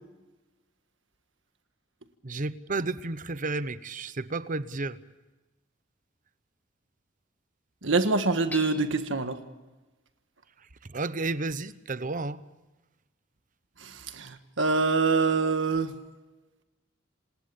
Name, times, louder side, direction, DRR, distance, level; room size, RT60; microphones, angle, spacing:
voice 1, 2.2-5.0 10.8-12.4, right 3 dB, 45° right, 15 dB, 0.9 m, -32 dB
voice 2, 7.8-9.4 13.8-15.9, right 3 dB, 70° right, 8 dB, 1.6 m, -25 dB
Hammer / Chink clink, 8.5-9.3, left 2 dB, 10° left, 2.4 m, -42 dB
27.5 x 19.5 x 7.0 m, 1.1 s
head